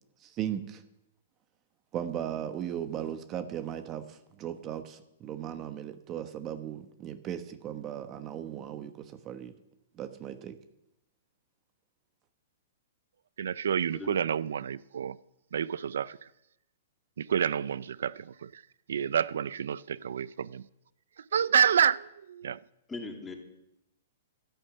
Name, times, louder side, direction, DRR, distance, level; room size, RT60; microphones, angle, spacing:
voice 1, 0.2-0.8 1.9-9.6 10.0-10.6, right 10 dB, 30° right, 1.2 m, -37 dB
voice 2, 13.4-15.2 15.5-16.2 17.2-18.6 18.9-20.6 21.2-22.6, right 8 dB, 75° right, 0.4 m, -28 dB
voice 3, 22.9-23.3, left 3 dB, 10° left, 2.8 m, -39 dB
13.0 x 11.0 x 8.1 m
hypercardioid pair, 135°, 0 cm